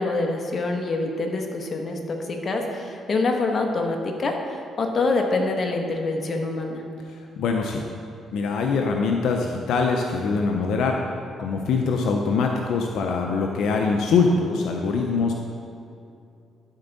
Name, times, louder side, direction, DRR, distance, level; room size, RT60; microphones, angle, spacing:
voice 1, 0.0-6.8, left 3 dB, 45° left, 2 dB, 1.1 m, -25 dB
voice 2, 7.4-7.8 8.3-11.0 11.4-15.3, left 4 dB, 80° left, 2 dB, 0.6 m, -23 dB
12.5 x 4.5 x 4.0 m, 2.6 s
cardioid pair, 90°, 0 cm